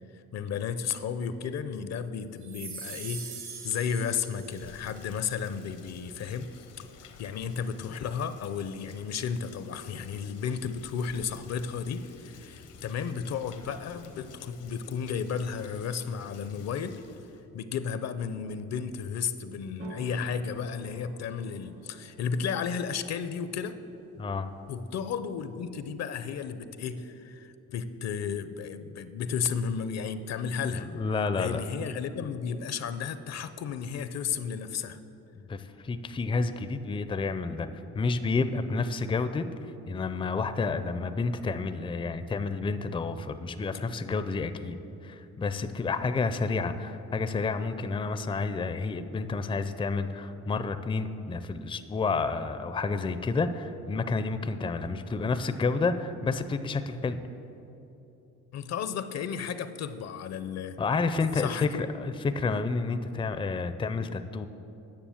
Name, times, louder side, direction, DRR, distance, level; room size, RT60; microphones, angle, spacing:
voice 1, 0.3-3.3 3.6-6.7 7.2-17.0 17.5-23.8 24.7-30.9 31.4-35.0 58.5-60.8 61.3-61.8, left 6 dB, 60° left, 11 dB, 0.6 m, -33 dB
sound 1, 2.4-4.9, right 5 dB, 75° right, 2.3 m, -42 dB
Rain, 4.2-17.4, left 5 dB, 85° left, 1.1 m, -52 dB
sound 2, 19.8-27.1, right 3 dB, 50° right, 0.8 m, -51 dB
voice 2, 24.2-24.5 30.7-31.6 35.4-37.7 37.9-39.5 39.9-44.8 45.0-57.2 60.8-64.5, left 4 dB, 15° left, 10 dB, 0.4 m, -30 dB
9.8 x 6.8 x 7.1 m, 2.9 s
cardioid pair, 90°, 30 cm